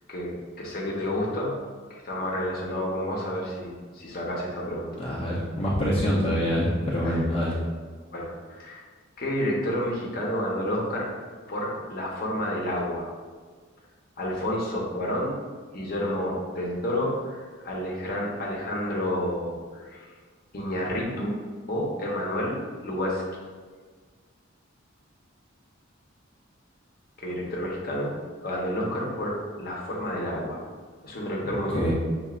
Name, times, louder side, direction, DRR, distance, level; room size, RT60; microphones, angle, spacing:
voice 1, 0.1-1.5 1.9-5.0 7.0-7.2 8.1-8.8 9.2-11.1 11.5-13.1 14.2-15.4 15.7-20.1 20.5-21.4 21.7-22.6 22.8-23.4 27.2-28.1 28.4-30.6 31.0-31.9, left 1 dB, 50° left, -3 dB, 0.9 m, -30 dB
voice 2, 5.0-7.5 31.7-31.9, equal, 30° left, -7 dB, 0.6 m, -25 dB
6.8 x 2.5 x 2.4 m, 1.5 s
head